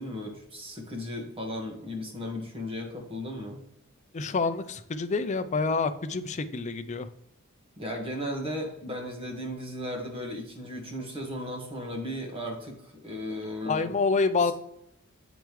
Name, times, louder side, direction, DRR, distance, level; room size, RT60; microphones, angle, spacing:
voice 1, 0.0-3.6 7.8-13.9, left 1 dB, 25° right, 1 dB, 1.5 m, -36 dB
voice 2, 4.1-7.1 13.7-14.5, left 4 dB, 35° left, 10 dB, 0.5 m, -27 dB
7.7 x 5.2 x 3.1 m, 0.77 s
head